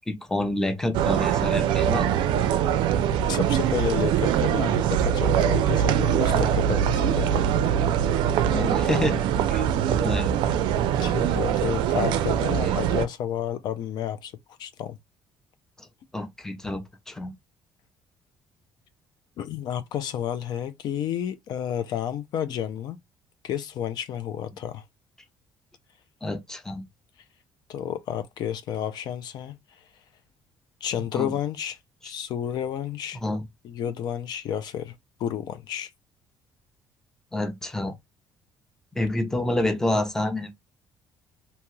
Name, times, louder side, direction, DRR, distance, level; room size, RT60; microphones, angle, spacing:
voice 1, 0.0-2.1 6.3-6.5 8.5-9.2 9.5-10.3 11.1-11.2 12.3-12.7 16.1-17.3 26.2-26.8 31.1-31.3 33.2-33.4 37.3-37.9 39.0-40.5, left 1 dB, 5° left, 0.6 m, -28 dB
sound 1, 0.9-13.1, right 9 dB, 85° right, 0.4 m, -23 dB
voice 2, 3.2-7.5 8.6-9.0 11.0-14.3 14.6-15.0 19.4-23.0 23.4-24.8 27.7-29.5 30.8-31.8 32.0-33.2 33.6-34.9 35.2-35.9, left 9 dB, 60° left, 0.4 m, -31 dB
2.8 x 2.3 x 3.0 m
cardioid pair, 135°, 8 cm